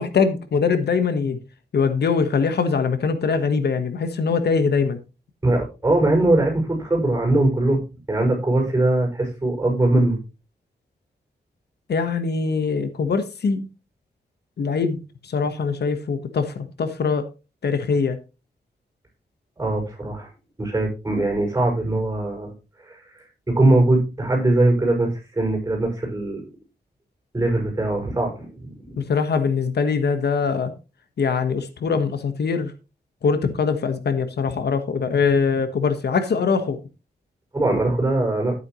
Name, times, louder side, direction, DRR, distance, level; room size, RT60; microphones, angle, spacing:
voice 1, 0.0-1.4 1.7-5.0 11.9-13.6 14.6-17.2 17.6-18.2 29.0-30.7 31.2-32.7 33.2-36.8, left 5 dB, 80° left, 1.3 m, -22 dB
voice 2, 5.4-7.8 8.1-10.2 19.6-20.3 20.6-22.5 22.9-23.0 23.5-26.4 27.3-29.0 37.5-38.5, right 2 dB, 15° right, 6.1 m, -21 dB
11.5 x 9.5 x 3.1 m
wide cardioid pair, 180°, 17 cm